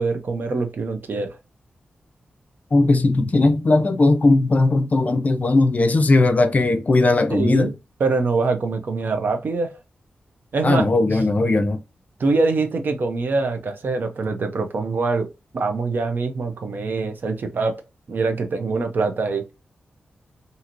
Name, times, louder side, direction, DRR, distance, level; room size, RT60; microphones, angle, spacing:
voice 1, 0.0-1.3 7.3-7.7 8.0-9.8 10.5-10.8 11.1-11.2 12.2-15.3 15.5-17.8 18.1-19.4, right 3 dB, 65° right, 0.6 m, -24 dB
voice 2, 2.7-7.7 10.6-11.8, left 2 dB, 45° left, 0.5 m, -18 dB
2.9 x 2.7 x 2.5 m
cardioid pair, 50°, 4 cm